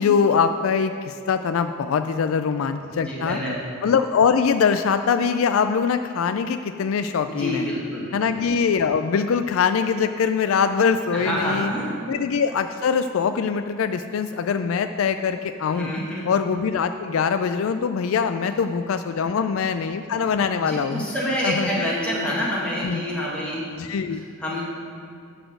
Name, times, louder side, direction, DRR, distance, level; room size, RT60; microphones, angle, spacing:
voice 1, 0.0-3.4 3.8-7.7 8.1-11.7 12.1-15.9 16.3-21.0 21.4-21.9 22.2-22.3 22.8-23.0 23.8-24.2, left 6 dB, 80° left, 9 dB, 0.4 m, -23 dB
voice 2, 2.9-3.6 7.3-8.1 11.1-11.9 15.8-16.2 20.6-24.0 24.4-24.6, equal, 5° left, -6 dB, 2.0 m, -27 dB
11.5 x 4.2 x 7.6 m, 2.3 s
head